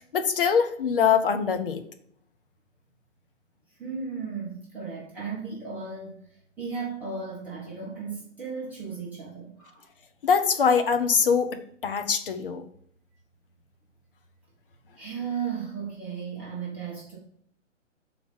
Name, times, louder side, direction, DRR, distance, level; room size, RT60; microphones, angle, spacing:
voice 1, 0.0-1.8 10.2-12.7, left 6 dB, 45° left, 0.8 m, -23 dB
voice 2, 3.8-6.2 6.6-9.9 15.0-17.2, right 5 dB, 5° right, 0.7 m, -35 dB
6.0 x 4.0 x 5.2 m
figure-of-eight pair, 135°, 38 cm